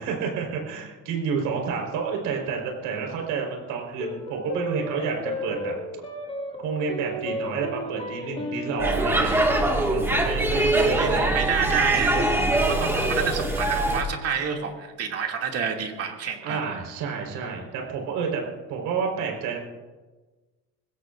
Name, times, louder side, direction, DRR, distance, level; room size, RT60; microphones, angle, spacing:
voice 1, 0.0-5.7 6.6-11.3 16.4-18.4 18.7-19.6, right 5 dB, 80° right, 1 dB, 4.6 m, -29 dB
sound 1, 4.0-12.6, left 1 dB, 20° left, 3.3 m, -35 dB
Speech / Shout / Subway metro underground, 8.8-14.0, right 1 dB, 5° right, 1.9 m, -23 dB
voice 2, 10.4-16.6, right 7 dB, 45° right, 1 dB, 2.6 m, -29 dB
22.0 x 17.0 x 2.6 m, 1.3 s
cardioid pair, 135°, 33 cm